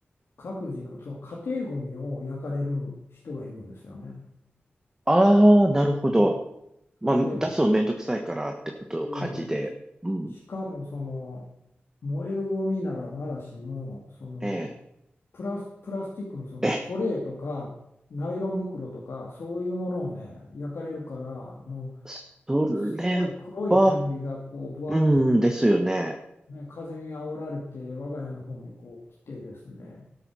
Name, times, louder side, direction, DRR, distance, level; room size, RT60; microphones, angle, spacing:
voice 1, 0.4-4.2 6.2-6.3 7.0-7.5 9.0-9.6 10.3-11.5 12.0-14.7 15.3-17.7 18.1-21.9 23.0-25.0 25.3-26.1 26.5-29.0 29.3-30.1, left 2 dB, 85° left, -3 dB, 2.4 m, -34 dB
voice 2, 5.1-6.4 7.0-8.5 8.9-9.7 10.0-10.3 14.4-14.7 16.6-16.8 22.1-22.2 22.5-23.3 23.7-23.9 24.9-26.2, right 1 dB, 15° right, 3 dB, 1.3 m, -22 dB
13.0 x 8.3 x 6.3 m, 0.81 s
wide cardioid pair, 75°, 4 cm